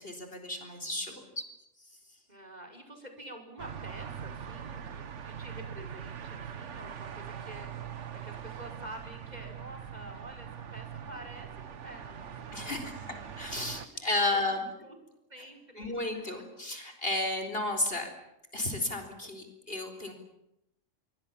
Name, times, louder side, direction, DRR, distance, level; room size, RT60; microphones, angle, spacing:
voice 1, 0.0-1.4 12.5-14.6 15.8-18.1 18.5-20.1, left 2 dB, 50° left, 6 dB, 4.4 m, -33 dB
voice 2, 2.3-7.7 8.1-13.2 13.8-13.9 14.3-14.4 14.8-15.0 15.3-16.6, right 1 dB, 35° right, 4 dB, 5.7 m, -48 dB
sound 1, 3.6-13.9, right 8 dB, 70° right, 1.4 m, -42 dB
27.5 x 23.0 x 7.3 m, 0.85 s
omnidirectional pair, 1.3 m